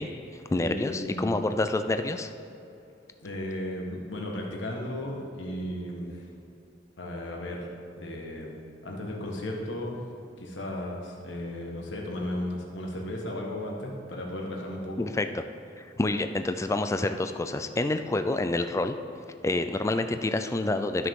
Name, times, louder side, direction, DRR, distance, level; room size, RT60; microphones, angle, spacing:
voice 1, 0.0-2.3 15.0-15.4 15.8-19.0 19.4-21.1, left 2 dB, 15° left, 8 dB, 0.4 m, -28 dB
voice 2, 0.5-1.4 3.2-6.3 7.0-7.7 8.0-8.5 8.8-10.0 10.4-15.1, left 1 dB, 80° left, -1 dB, 1.4 m, -35 dB
13.0 x 6.1 x 3.7 m, 2.8 s
head